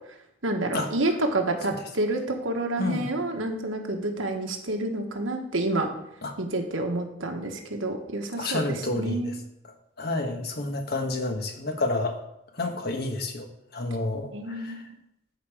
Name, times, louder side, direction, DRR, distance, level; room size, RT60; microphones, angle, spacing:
voice 1, 0.4-5.9 6.4-9.3 14.3-14.8, right 2 dB, 90° right, 3 dB, 1.5 m, -29 dB
voice 2, 8.4-9.3 10.0-12.1 12.6-13.5 13.7-14.8, left 2 dB, 55° left, 4 dB, 1.4 m, -29 dB
13.0 x 5.1 x 5.0 m, 0.81 s
head